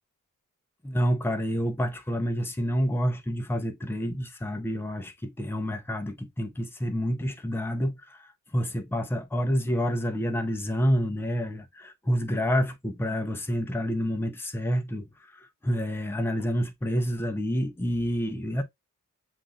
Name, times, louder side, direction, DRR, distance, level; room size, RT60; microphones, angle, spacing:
voice 1, 0.8-18.6, equal, 5° left, 0.7 m, -28 dB
7.4 x 2.6 x 2.4 m
wide cardioid pair, 105°, 31 cm